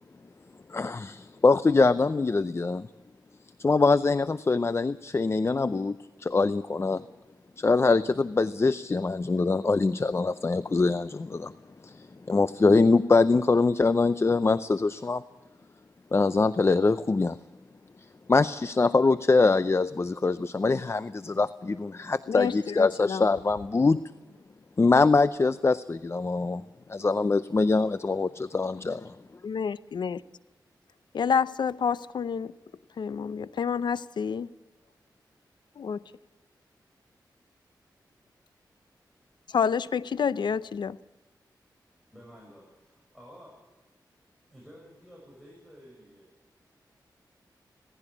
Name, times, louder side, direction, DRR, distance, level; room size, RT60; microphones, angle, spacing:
voice 1, 0.7-2.9 3.6-7.0 7.6-11.5 11.8-15.2 16.1-17.4 18.3-24.0 24.8-26.6 26.9-29.1, left 3 dB, 35° left, 14 dB, 0.6 m, -23 dB
voice 2, 22.3-23.2 29.4-30.2 31.1-32.5 33.0-34.5 35.8-36.0 39.5-41.0, left 6 dB, 75° left, 17 dB, 0.6 m, -28 dB
voice 3, 42.1-43.5 44.5-46.3, equal, ahead, -3 dB, 7.3 m, -51 dB
17.5 x 15.5 x 9.9 m, 1.2 s
cardioid pair, 70°, 8 cm